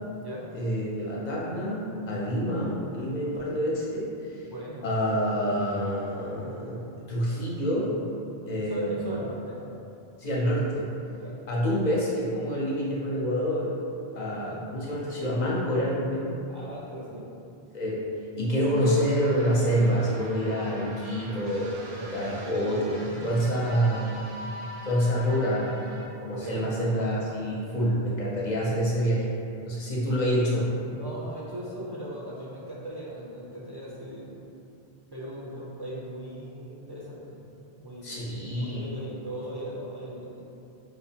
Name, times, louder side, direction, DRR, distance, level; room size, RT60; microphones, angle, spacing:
voice 1, 0.5-4.4 4.8-7.9 8.5-9.0 10.2-10.9 11.5-13.7 14.2-16.3 17.7-18.0 18.4-24.2 24.9-25.7 26.2-30.7 38.0-38.9, equal, 50° left, -6 dB, 0.6 m, -27 dB
voice 2, 4.5-4.8 8.7-9.6 11.2-11.4 14.2-14.7 16.5-17.3 26.3-26.8 30.9-34.3 35.1-37.4 37.7-38.1 38.5-40.4, right 1 dB, 35° right, -7 dB, 0.4 m, -38 dB
sound 1, 18.7-26.1, right 1 dB, 75° right, 0.8 m, -42 dB
4.7 x 2.1 x 2.7 m, 2.8 s
omnidirectional pair, 1.1 m